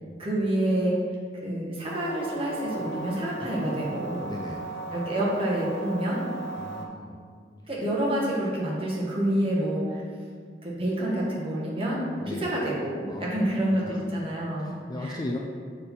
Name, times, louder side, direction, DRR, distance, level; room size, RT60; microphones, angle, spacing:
voice 1, 0.2-0.9 1.4-4.2 4.9-6.2 7.7-10.0 10.6-12.0 12.3-14.7 15.0-15.2, right 1 dB, 30° right, -5 dB, 1.3 m, -28 dB
sound 1, 1.8-6.9, right 3 dB, 70° left, 0.7 m, -37 dB
voice 2, 3.4-3.9 4.2-4.6 6.6-7.2 12.2-12.5 13.1-13.3 13.8-14.0 14.6-15.4, left 2 dB, 20° left, 0 dB, 0.4 m, -37 dB
6.5 x 4.2 x 4.2 m, 2.1 s
head